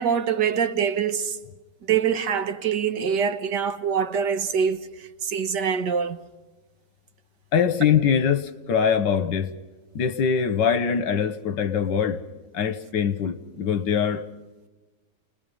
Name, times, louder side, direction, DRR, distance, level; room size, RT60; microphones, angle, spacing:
voice 1, 0.0-1.4 1.9-6.2, right 7 dB, 75° right, 1.9 m, -24 dB
voice 2, 7.5-9.5 10.0-12.2 12.5-14.2, left 7 dB, 80° left, 1.8 m, -23 dB
30.0 x 21.0 x 5.5 m
omnidirectional pair, 1.9 m